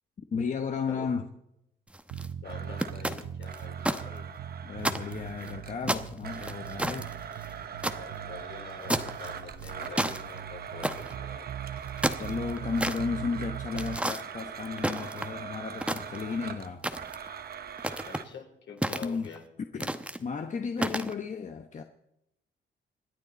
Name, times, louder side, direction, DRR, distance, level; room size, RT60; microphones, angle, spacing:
voice 1, 0.3-1.3 4.6-7.1 12.2-16.8 19.0-19.3 19.7-21.8, left 5 dB, 40° left, 1.0 m, -34 dB
sound 1, 1.9-2.3 2.8-4.0 4.3-4.4 4.8-5.5 5.9-8.0 8.9-9.3 9.6-10.2 10.8-11.1 11.8-13.0 13.8-14.2 14.8-15.4 15.8-16.4 16.8-17.3 17.8-18.2 18.8-19.4 19.8-20.2 20.8-21.1, right 1 dB, 5° right, 1.0 m, -31 dB
sound 2, 2.1-14.0, right 9 dB, 75° right, 0.8 m, -41 dB
voice 2, 2.4-4.3 7.8-11.5 18.0-19.4, left 6 dB, 65° left, 3.7 m, -46 dB
Domestic sounds home sounds, 2.4-5.8 6.2-18.2, right 8 dB, 50° right, 1.0 m, -42 dB
26.5 x 9.8 x 4.2 m
cardioid pair, 90°, 20 cm